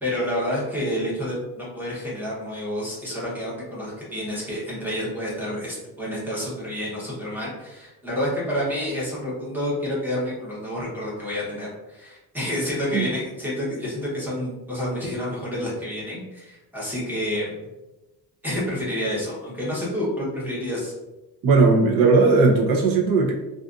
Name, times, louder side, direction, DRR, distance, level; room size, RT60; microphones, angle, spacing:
voice 1, 0.0-17.5 18.4-20.9, left 1 dB, 5° right, -7 dB, 0.7 m, -29 dB
voice 2, 21.4-23.3, right 3 dB, 65° right, 0 dB, 0.6 m, -17 dB
2.5 x 2.4 x 2.3 m, 1.0 s
cardioid pair, 170°, 38 cm